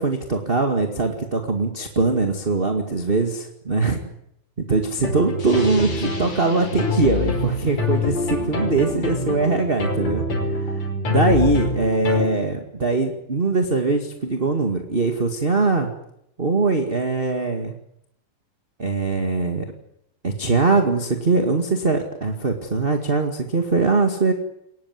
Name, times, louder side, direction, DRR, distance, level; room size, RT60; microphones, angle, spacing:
voice 1, 0.0-4.0 4.6-10.2 10.6-10.7 11.1-15.9 16.4-17.7 18.8-19.6 20.2-24.3, right 3 dB, 20° right, 5 dB, 1.5 m, -21 dB
sound 1, 5.0-12.3, left 3 dB, 55° left, 6.4 m, -25 dB
22.5 x 19.5 x 9.5 m, 0.76 s
omnidirectional pair, 4.1 m